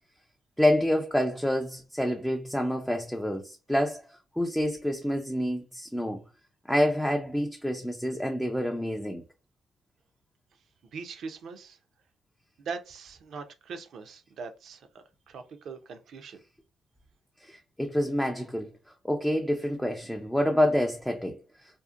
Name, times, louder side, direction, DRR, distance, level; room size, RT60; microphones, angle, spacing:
voice 1, 0.6-4.0 4.4-6.2 6.7-9.2 17.4-18.7 19.0-21.4, equal, 5° left, 0.4 m, -27 dB
voice 2, 10.9-11.8 12.6-16.4, right 5 dB, 65° right, 0.5 m, -41 dB
2.6 x 2.1 x 2.4 m
cardioid pair, 90°, 0 cm